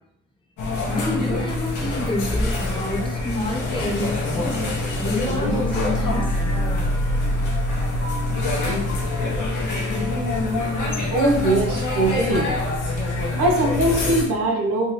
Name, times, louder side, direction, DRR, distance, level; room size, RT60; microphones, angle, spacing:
sound 1, 0.6-14.2, left 2 dB, 80° left, 1.0 m, -25 dB
voice 1, 0.9-4.6 5.0-6.2, left 1 dB, 15° left, -1 dB, 1.0 m, -29 dB
sound 2, 2.3-10.9, equal, 45° left, 1.3 m, -28 dB
voice 2, 11.1-12.5 13.4-14.9, right 1 dB, 85° right, 2 dB, 0.8 m, -21 dB
3.5 x 3.0 x 2.9 m, 0.74 s
cardioid pair, 90°, 30 cm